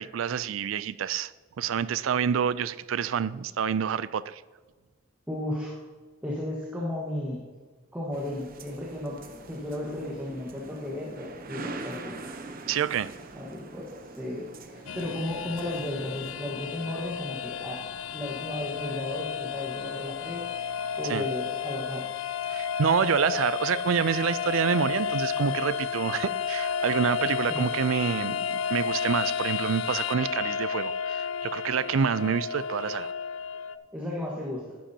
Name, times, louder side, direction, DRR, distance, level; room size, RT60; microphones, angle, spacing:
voice 1, 0.0-1.3 1.6-4.4 12.7-13.1 21.0-21.3 22.5-33.1, right 7 dB, 90° right, 17 dB, 0.4 m, -27 dB
voice 2, 5.3-5.8 6.2-7.4 7.9-12.2 13.3-20.4 21.0-22.1 27.5-27.7 33.9-34.6, left 1 dB, 10° right, -4 dB, 1.4 m, -34 dB
sound 1, 8.1-16.3, right 3 dB, 45° right, 0.8 m, -43 dB
sound 2, 14.9-33.8, left 7 dB, 80° left, 0.4 m, -32 dB
11.0 x 10.0 x 2.8 m, 1.4 s
head